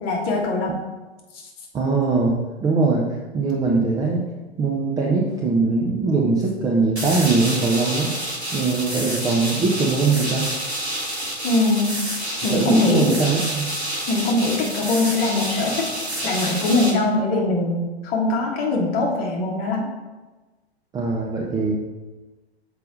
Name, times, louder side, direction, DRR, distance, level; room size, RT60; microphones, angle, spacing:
voice 1, 0.0-0.7 11.4-11.9 12.4-13.1 14.1-15.9 16.2-19.8, left 2 dB, 30° left, -1 dB, 1.4 m, -22 dB
voice 2, 1.7-2.3 2.6-3.0 3.3-4.2 4.6-8.1 8.5-10.5 12.5-13.7 20.9-21.8, right 3 dB, 10° right, -3 dB, 0.5 m, -21 dB
sound 1, 7.0-16.9, right 1 dB, 85° right, 1.6 m, -28 dB
6.6 x 4.8 x 3.8 m, 1.2 s
figure-of-eight pair, 100°, 32 cm